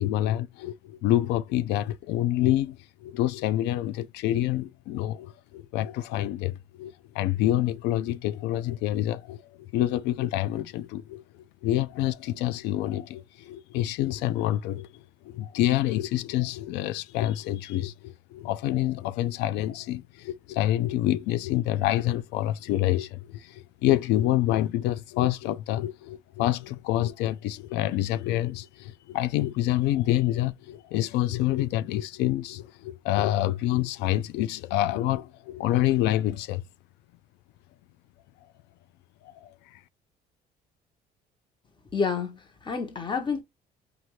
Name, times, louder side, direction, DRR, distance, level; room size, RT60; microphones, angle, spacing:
voice 1, 0.0-9.4 9.7-11.2 11.6-14.9 15.2-36.6 39.4-39.8, left 14 dB, 90° left, 0.4 m, -27 dB
voice 2, 41.9-43.4, left 5 dB, 30° left, 1.2 m, -29 dB
4.3 x 2.6 x 3.1 m
cardioid pair, 110°, 17 cm